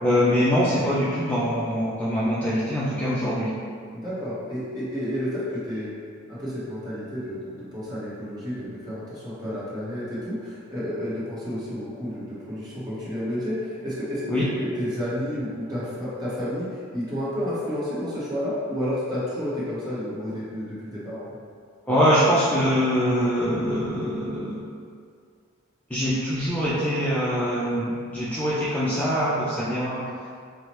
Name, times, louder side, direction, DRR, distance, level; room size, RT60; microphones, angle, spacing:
voice 1, 0.0-3.5 14.3-14.4 21.9-24.6 25.9-30.0, equal, 5° left, -10 dB, 0.4 m, -23 dB
voice 2, 3.9-5.9 6.3-21.3, equal, 20° right, -10 dB, 1.0 m, -31 dB
4.6 x 2.0 x 3.0 m, 2.1 s
head